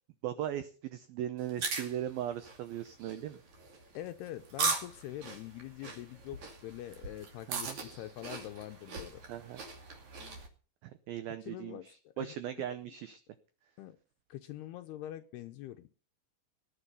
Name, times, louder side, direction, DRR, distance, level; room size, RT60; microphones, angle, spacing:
voice 1, 0.2-3.4 7.5-7.8 9.3-9.6 10.8-13.2, right 11 dB, 90° right, 11 dB, 2.1 m, -38 dB
sound 1, 1.4-10.5, right 4 dB, 45° right, 3.4 m, -39 dB
voice 2, 3.9-9.2 10.2-10.4 11.4-12.3 13.8-14.0 14.3-15.9, left 13 dB, 80° left, 7 dB, 2.4 m, -44 dB
18.5 x 10.0 x 5.4 m, 0.40 s
omnidirectional pair, 5.4 m